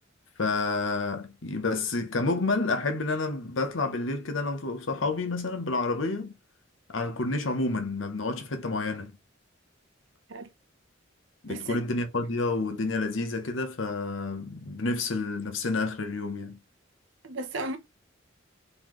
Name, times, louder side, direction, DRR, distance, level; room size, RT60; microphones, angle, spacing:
voice 1, 0.4-6.4 6.9-9.2 11.4-16.6, left 3 dB, 80° left, 0.9 m, -29 dB
voice 2, 11.5-11.8 17.2-17.8, right 2 dB, 75° right, 0.9 m, -34 dB
3.9 x 3.3 x 3.1 m
head